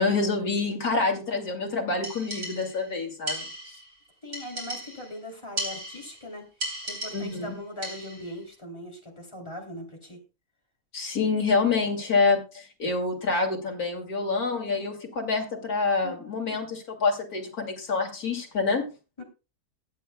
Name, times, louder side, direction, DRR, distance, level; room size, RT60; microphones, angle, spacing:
voice 1, 0.0-3.5 7.1-7.6 10.9-18.9, left 4 dB, 80° left, 1 dB, 2.8 m, -27 dB
sound 1, 2.0-2.9 3.3-3.9 4.3-5.2 5.6-6.2 6.6-7.5 7.8-8.3, right 1 dB, 65° right, 4.2 m, -36 dB
voice 2, 4.2-6.5 6.8-10.2 16.0-16.2 19.2-19.3, left 1 dB, 20° left, 0 dB, 2.9 m, -40 dB
21.0 x 8.3 x 2.2 m, 0.31 s
omnidirectional pair, 1.6 m